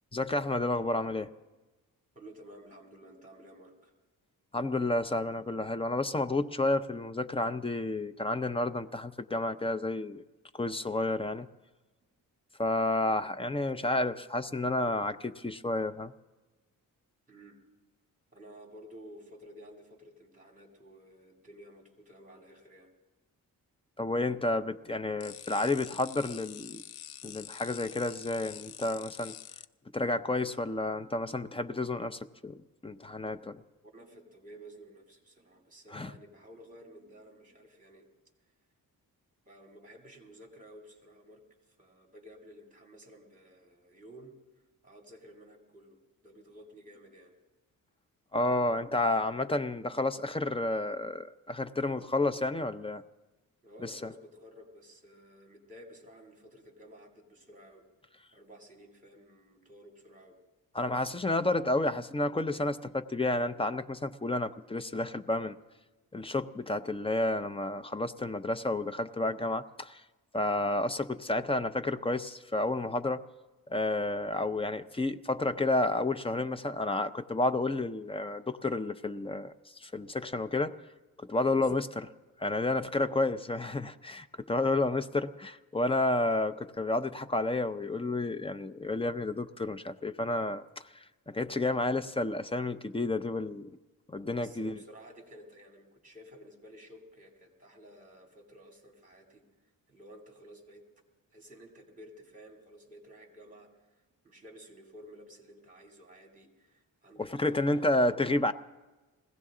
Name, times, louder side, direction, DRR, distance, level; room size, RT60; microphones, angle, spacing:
voice 1, 0.1-1.3 4.5-10.2 10.5-11.5 12.6-16.1 24.0-26.8 27.2-29.3 29.9-33.6 35.9-36.1 48.3-53.0 53.8-53.9 60.7-65.6 66.1-70.0 70.3-73.2 73.7-79.5 79.8-80.8 81.2-81.9 82.4-90.6 90.9-93.7 94.1-94.8 107.3-108.5, left 2 dB, 15° left, 9 dB, 0.4 m, -30 dB
voice 2, 2.1-3.9 13.8-14.1 17.3-17.6 18.3-22.9 33.9-38.1 39.4-47.3 53.6-57.9 58.3-60.4 81.4-81.7 94.4-99.5 99.9-100.9 101.3-107.9, equal, 20° right, 1 dB, 2.8 m, -53 dB
sound 1, 25.2-29.7, left 11 dB, 85° left, 0.5 m, -46 dB
21.0 x 16.5 x 3.7 m, 1.2 s
wide cardioid pair, 125°, 36 cm